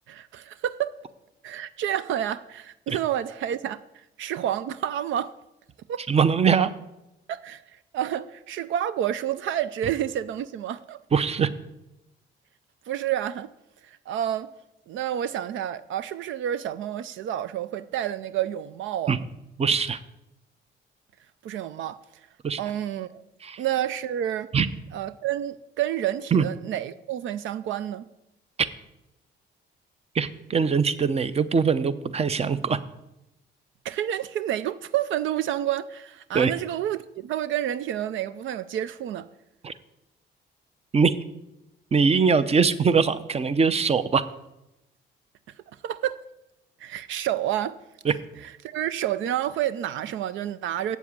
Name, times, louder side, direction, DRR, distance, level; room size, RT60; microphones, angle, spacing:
voice 1, 0.1-1.0 1.4-5.3 5.9-6.0 7.3-11.0 12.9-13.5 13.8-14.5 14.9-19.2 21.4-22.0 22.6-23.2 23.6-24.5 24.9-28.1 33.8-39.3 45.8-46.2 46.8-47.8 48.4-51.0, right 11 dB, 75° right, 0.5 m, -29 dB
voice 2, 6.1-6.7 11.1-11.5 19.1-19.2 19.6-20.0 22.4-22.6 23.4-23.6 24.5-24.7 26.3-26.4 28.6-28.7 30.1-32.8 36.3-36.5 39.6-39.7 40.9-41.2 41.9-44.3 48.0-48.1, right 5 dB, 30° right, 0.7 m, -22 dB
8.0 x 7.3 x 8.4 m
cardioid pair, 90°, 20 cm